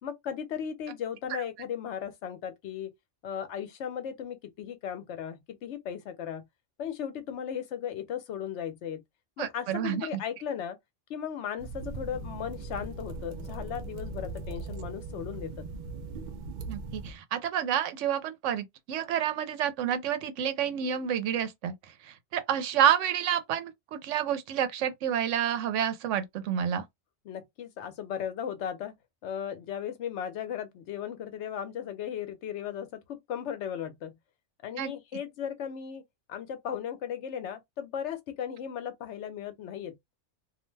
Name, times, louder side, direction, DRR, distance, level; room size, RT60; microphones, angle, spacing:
voice 1, 0.0-2.9 3.2-6.5 6.8-9.0 9.4-10.8 11.1-15.7 27.3-28.9 29.2-34.2 34.6-36.0 36.3-40.0, left 8 dB, 70° left, 0.9 m, -36 dB
voice 2, 9.4-10.1 16.7-21.7 22.0-26.8 34.8-34.9, right 9 dB, 85° right, 0.9 m, -29 dB
sound 1, 11.6-17.1, right 3 dB, 55° right, 0.5 m, -39 dB
2.5 x 2.1 x 3.2 m
omnidirectional pair, 1.2 m